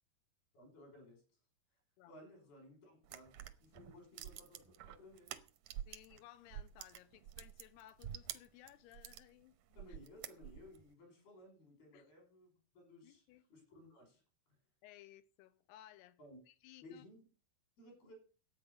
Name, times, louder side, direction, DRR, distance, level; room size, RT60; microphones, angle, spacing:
voice 1, 0.5-1.2 2.1-5.4 9.8-13.2 13.5-14.2 14.5-14.6 16.2-16.4 16.8-17.2 17.8-18.1, left 1 dB, 65° left, 7.1 m, -59 dB
voice 2, 2.0-2.3 5.9-9.6 9.9-10.0 11.9-12.1 13.0-13.4 14.8-16.2 16.5-17.0, left 14 dB, 85° left, 2.9 m, -59 dB
sound 1, 3.0-6.2 6.5-9.3 9.7-10.8, right 11 dB, 80° right, 1.8 m, -48 dB
11.5 x 8.9 x 6.6 m
omnidirectional pair, 4.7 m